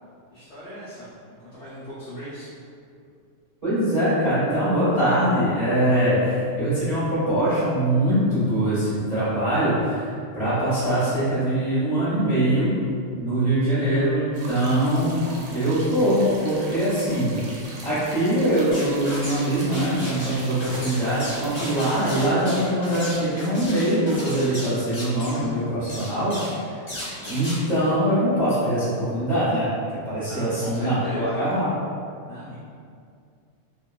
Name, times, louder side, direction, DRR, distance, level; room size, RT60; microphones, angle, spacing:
voice 1, 0.3-1.1 1.4-2.5 30.3-31.4 32.3-32.5, equal, 80° left, -9 dB, 0.8 m, -38 dB
voice 2, 3.6-12.7 13.2-15.2 15.5-17.4 17.8-26.8 27.3-29.7 30.0-31.7, right 1 dB, 30° right, -14 dB, 0.7 m, -22 dB
sound 1, 14.3-22.2, right 2 dB, 80° right, 1.5 m, -42 dB
sound 2, 18.7-19.5 19.7-25.4 25.9-26.6 26.9-27.6, left 1 dB, 30° left, 0.8 m, -35 dB
3.1 x 2.8 x 2.2 m, 2.3 s
omnidirectional pair, 2.4 m